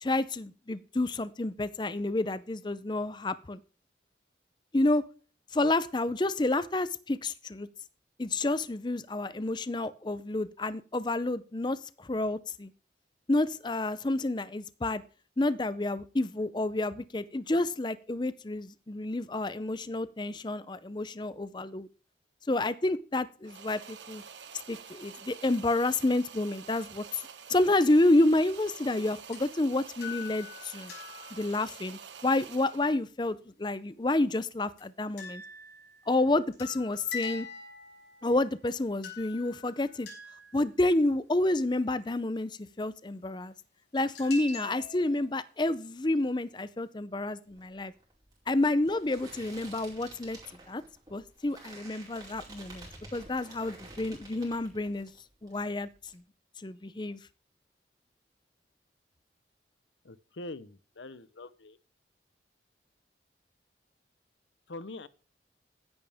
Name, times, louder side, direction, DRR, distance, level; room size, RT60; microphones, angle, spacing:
voice 1, 0.0-3.6 4.7-5.0 5.5-7.7 8.2-12.7 13.3-15.0 15.4-21.9 22.5-24.2 24.7-27.2 27.5-30.9 31.3-35.4 36.1-37.5 38.2-40.1 40.5-43.5 43.9-47.9 48.5-50.4 50.7-50.8 51.1-52.9 53.1-55.1 55.4-56.2 56.6-57.2, left 2 dB, 25° left, 0.5 m, -29 dB
sound 1, 23.4-33.0, right 7 dB, 80° right, 1.2 m, -48 dB
sound 2, 29.3-29.4 29.9-31.8 34.8-34.9 35.2-38.3 38.7-38.8 39.0-40.7 44.1-45.4, left 5 dB, 65° left, 5.8 m, -43 dB
sound 3, 47.5-55.2 55.5-56.1, right 2 dB, 20° right, 4.9 m, -50 dB
voice 2, 60.0-61.8 64.7-65.1, left 2 dB, 90° left, 0.8 m, -43 dB
16.0 x 10.5 x 3.5 m
head